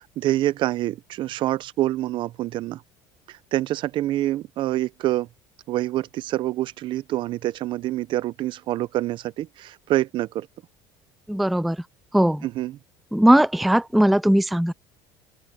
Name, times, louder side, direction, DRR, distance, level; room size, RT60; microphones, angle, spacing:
voice 1, 0.2-2.8 3.3-5.3 5.7-10.5 12.4-12.8, right 15 dB, 55° right, 0.7 m, -26 dB
voice 2, 11.3-11.8 12.1-12.5 13.1-14.7, right 1 dB, ahead, 0.4 m, -19 dB
cardioid pair, 120°, 10 cm